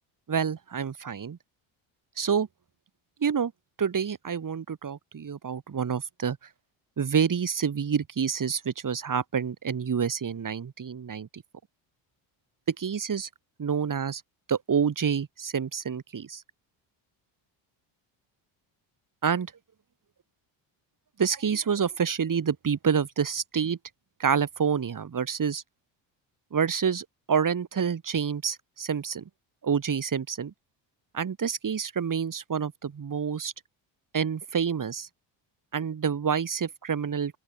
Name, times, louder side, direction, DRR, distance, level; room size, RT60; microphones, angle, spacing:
voice 1, 0.3-1.4 2.2-2.5 3.2-3.5 3.8-6.4 7.0-11.4 12.7-13.3 13.6-14.2 14.5-16.4 19.2-19.5 21.2-23.8 24.2-25.6 26.5-29.2 29.6-30.5 31.1-33.5 34.1-35.1 35.7-37.4, right 7 dB, 40° right, 5.7 m, -28 dB
open air
cardioid pair, 90°, 50 cm